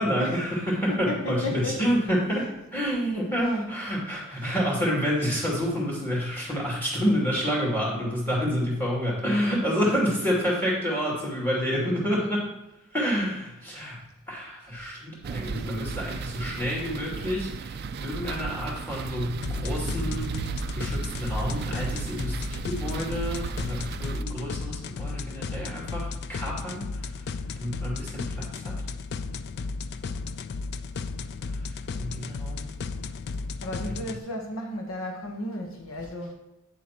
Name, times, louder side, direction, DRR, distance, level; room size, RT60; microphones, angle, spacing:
voice 1, 0.0-12.5 12.9-14.0 14.3-20.3 20.7-27.0 27.6-28.8 31.6-31.7 32.0-32.7, equal, 10° left, -5 dB, 2.5 m, -28 dB
voice 2, 0.9-1.8 33.6-36.3, left 1 dB, 75° left, 3 dB, 1.0 m, -33 dB
sound 1, 15.2-24.2, right 5 dB, 45° right, 0.3 m, -35 dB
sound 2, 19.4-34.2, left 4 dB, 50° left, 0.3 m, -34 dB
9.1 x 7.4 x 2.9 m, 0.94 s
head